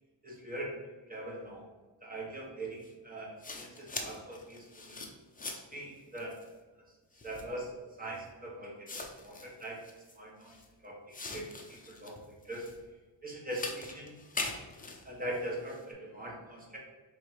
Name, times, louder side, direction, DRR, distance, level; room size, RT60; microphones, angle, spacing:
voice 1, 0.2-1.7 2.0-5.0 5.5-6.4 7.2-7.7 8.0-9.8 10.1-10.5 10.8-12.7 13.2-14.2 15.0-16.8, right 1 dB, 20° right, -3 dB, 1.3 m, -42 dB
sound 1, 2.8-2.9 3.4-5.8 6.2-6.5 7.1-7.5 8.3-8.4 8.9-10.7 11.1-12.8 13.5-15.8, left 3 dB, 20° left, 0.6 m, -42 dB
3.2 x 3.1 x 4.6 m, 1.2 s
cardioid pair, 95°, 45 cm